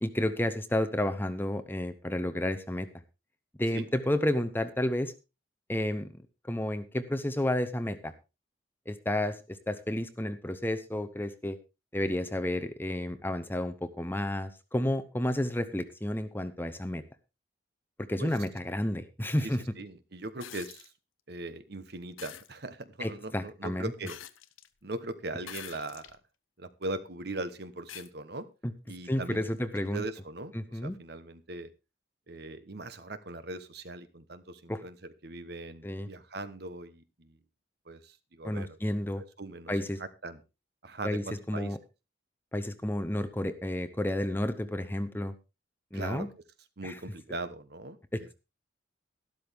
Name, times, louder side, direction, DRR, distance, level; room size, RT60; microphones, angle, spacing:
voice 1, 0.0-2.9 3.6-5.1 5.7-8.1 8.9-11.6 11.9-17.0 18.0-19.6 23.0-23.9 28.6-28.7 29.1-30.1 30.5-31.0 34.7-34.8 35.8-36.1 38.4-39.2 39.7-40.0 41.0-41.8 42.5-45.3 45.9-46.3 46.8-47.0 48.1-48.3, left 1 dB, 10° left, 11 dB, 0.8 m, -31 dB
voice 2, 19.4-20.9 21.3-24.2 24.8-26.1 26.6-28.5 28.9-29.4 29.8-31.7 32.3-37.4 37.9-38.8 39.4-39.7 40.0-40.4 40.8-41.7 45.9-46.3 46.8-48.3, right 2 dB, 55° right, 12 dB, 1.1 m, -40 dB
sound 1, 20.4-20.9 22.2-22.5 24.1-24.7 25.4-26.2 26.8-26.9 27.9-28.1 29.6-29.7, left 10 dB, 90° left, 0.9 m, -45 dB
12.5 x 12.5 x 3.5 m, 0.28 s
head